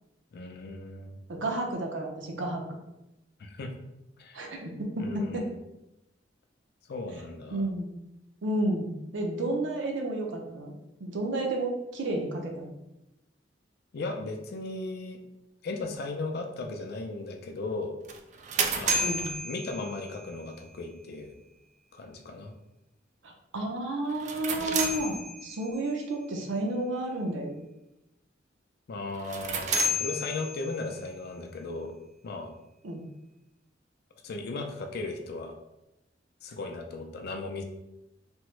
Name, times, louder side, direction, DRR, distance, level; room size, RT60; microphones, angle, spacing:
voice 1, 0.3-1.2 3.4-3.7 4.2-4.5 5.0-5.5 6.9-7.7 13.9-15.2 15.6-17.9 18.8-19.2 19.5-21.3 21.9-22.5 28.9-31.9 32.2-32.5 34.2-35.6 36.4-37.6, left 3 dB, 60° left, 4 dB, 0.4 m, -36 dB
voice 2, 1.3-2.6 4.3-5.5 7.5-7.9 8.4-10.7 11.0-12.7 19.0-19.3 23.2-27.6 32.8-33.0, right 1 dB, 85° right, 2 dB, 0.6 m, -31 dB
sound 1, 18.1-20.3 24.1-25.8 29.1-30.9, right 2 dB, 40° right, 0.3 m, -31 dB
3.5 x 2.0 x 3.1 m, 0.92 s
head